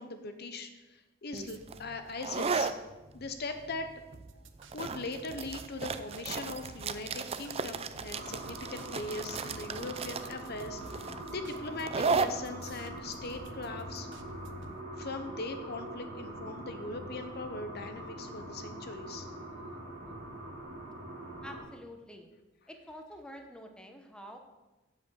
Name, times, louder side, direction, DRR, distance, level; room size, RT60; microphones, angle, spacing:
voice 1, 0.0-2.7 3.1-3.9 4.7-14.2 15.0-19.3, left 3 dB, 55° left, 7 dB, 0.8 m, -40 dB
sound 1, 1.3-14.7, right 4 dB, 30° right, 0.4 m, -36 dB
sound 2, 4.1-14.8, right 3 dB, 65° right, 0.7 m, -53 dB
sound 3, 8.1-21.6, right 1 dB, 85° right, 2.5 m, -43 dB
voice 2, 21.4-22.3 22.7-24.4, equal, 5° left, 4 dB, 1.0 m, -47 dB
8.1 x 7.3 x 6.3 m, 1.1 s
head